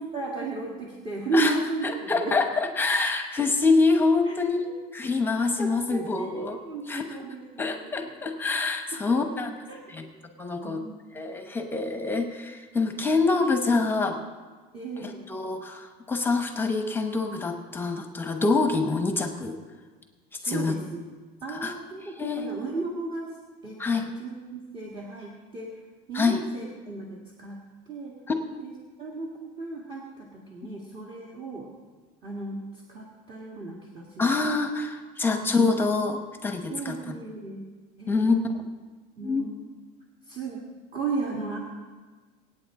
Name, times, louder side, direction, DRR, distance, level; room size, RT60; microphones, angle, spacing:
voice 1, 0.1-2.3 4.3-4.4 5.3-8.1 9.3-9.4 9.7-9.8 10.6-10.9 14.7-15.3 20.4-21.0 21.4-23.3 23.6-25.8 26.1-27.6 27.9-28.2 28.6-28.7 29.0-31.7 32.2-34.4 36.7-37.6 38.0-38.2 39.2-39.7 40.3-40.7 40.9-41.6, right 3 dB, 30° right, -2 dB, 1.8 m, -34 dB
voice 2, 1.8-6.6 6.9-7.0 7.6-9.5 9.9-10.0 10.4-10.8 11.1-14.2 15.0-19.6 20.4-20.7 21.5-21.7 22.0-22.5 23.8-24.1 26.1-26.4 28.3-28.4 34.2-37.1 38.1-38.6 39.2-39.5, left 3 dB, 10° left, 5 dB, 1.0 m, -26 dB
25.0 x 9.0 x 3.8 m, 1.4 s
cardioid pair, 165°, 18 cm